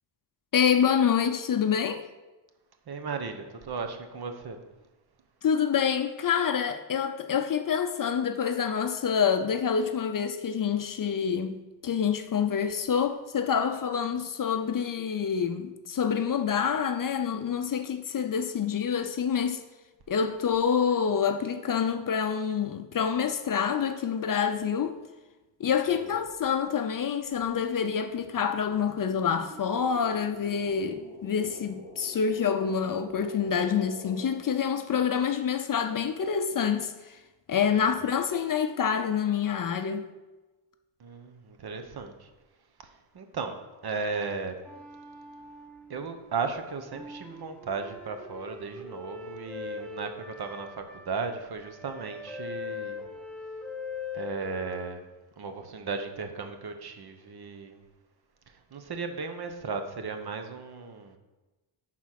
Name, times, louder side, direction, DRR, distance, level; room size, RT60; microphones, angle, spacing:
voice 1, 0.5-2.1 5.4-11.6 11.8-19.6 20.1-25.0 25.6-37.2 37.5-40.0, left 7 dB, 45° left, 0.5 m, -27 dB
voice 2, 2.9-4.6 37.7-37.8 41.0-42.3 43.1-44.5 45.9-53.0 54.1-55.1 55.4-57.8 58.7-61.2, right 4 dB, 50° right, 1.0 m, -35 dB
sound 1, 28.2-34.3, equal, 25° right, 2.3 m, -48 dB
sound 2, 44.6-46.3 46.9-54.9, left 4 dB, 5° left, 0.7 m, -41 dB
11.0 x 4.1 x 5.9 m
wide cardioid pair, 155°, 49 cm